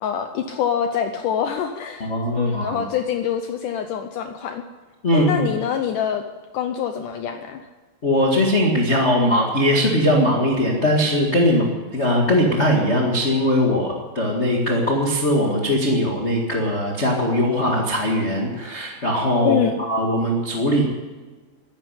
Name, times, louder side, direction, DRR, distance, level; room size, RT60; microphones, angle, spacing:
voice 1, 0.0-4.6 5.1-6.2 6.5-7.6 19.5-19.8, left 8 dB, 85° left, 6 dB, 1.8 m, -25 dB
voice 2, 2.0-2.8 5.0-5.5 8.0-19.6 19.9-20.8, equal, 45° left, -1 dB, 0.9 m, -20 dB
13.0 x 10.5 x 9.5 m, 1.3 s
omnidirectional pair, 4.7 m